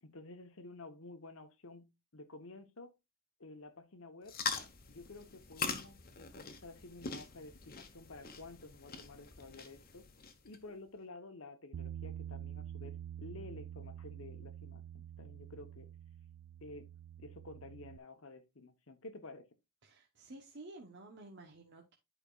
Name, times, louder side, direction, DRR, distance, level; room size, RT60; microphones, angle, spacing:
voice 1, 0.0-2.9 3.4-4.4 4.9-10.1 10.4-15.9 16.6-16.9 17.2-19.5, left 2 dB, 65° left, 1.0 m, -52 dB
sound 1, 4.3-10.6, left 5 dB, 45° left, 1.1 m, -43 dB
Bass guitar, 11.7-18.0, right 10 dB, 80° right, 0.3 m, -47 dB
voice 2, 19.8-21.9, right 2 dB, 55° right, 1.0 m, -52 dB
11.0 x 5.0 x 2.4 m
head